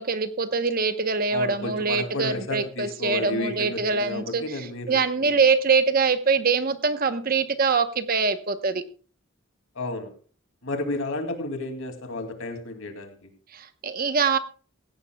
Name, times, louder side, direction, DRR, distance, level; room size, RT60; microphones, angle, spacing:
voice 1, 0.0-8.8 13.5-14.4, right 4 dB, 45° right, 10 dB, 0.9 m, -24 dB
voice 2, 1.3-5.4 9.7-10.1 10.6-13.3, left 2 dB, 75° left, 5 dB, 2.5 m, -32 dB
17.0 x 15.5 x 2.3 m, 0.40 s
head